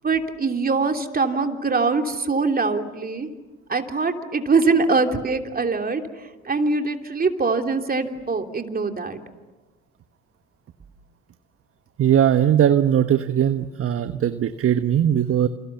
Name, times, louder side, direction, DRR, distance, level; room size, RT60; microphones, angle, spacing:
voice 1, 0.0-3.3 3.7-9.2, right 4 dB, 25° right, 5 dB, 3.1 m, -23 dB
voice 2, 12.0-15.5, right 10 dB, 40° right, 10 dB, 1.3 m, -19 dB
28.5 x 28.0 x 7.0 m, 1.2 s
hypercardioid pair, 65°, 34 cm